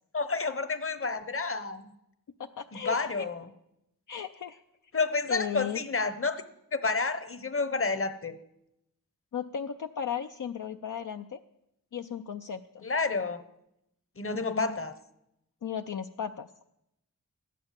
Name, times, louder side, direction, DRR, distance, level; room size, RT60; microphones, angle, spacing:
voice 1, 0.1-1.9 2.7-3.5 4.9-6.4 6.7-8.4 12.8-13.4 14.2-14.9, left 4 dB, 40° left, 11 dB, 1.0 m, -30 dB
voice 2, 2.4-3.3 4.1-4.6 5.3-5.8 9.3-11.4 11.9-12.9 14.3-14.8 15.6-16.5, left 8 dB, 60° left, 5 dB, 0.6 m, -36 dB
13.0 x 9.3 x 7.4 m, 0.84 s
wide cardioid pair, 65°, 34 cm